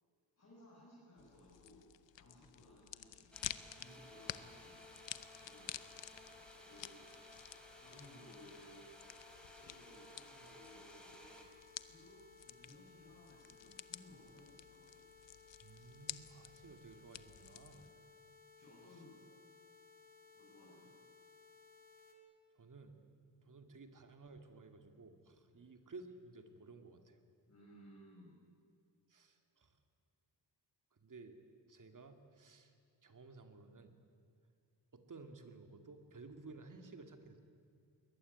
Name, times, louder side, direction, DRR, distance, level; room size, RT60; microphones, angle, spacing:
voice 1, 0.4-1.8 2.1-3.3 3.7-4.7 5.4-5.7 6.6-7.2 7.8-8.8 9.4-11.4 11.9-15.0 17.8-17.9 18.6-19.2 20.3-20.9 25.5-25.7 27.5-28.3, left 1 dB, 35° left, -5 dB, 5.9 m, -60 dB
sound 1, 1.2-17.9, left 11 dB, 90° left, 0.8 m, -52 dB
sound 2, 3.3-11.5, equal, ahead, 3.6 m, -58 dB
sound 3, 3.8-22.1, left 4 dB, 20° right, 3.5 m, -62 dB
voice 2, 15.6-17.9 22.5-23.0 23.4-27.2 29.1-29.7 31.0-31.4 31.7-32.7 33.0-34.0 34.9-37.4, right 3 dB, 45° right, 6 dB, 2.3 m, -55 dB
21.5 x 19.5 x 10.0 m, 2.4 s
wide cardioid pair, 120°, 43 cm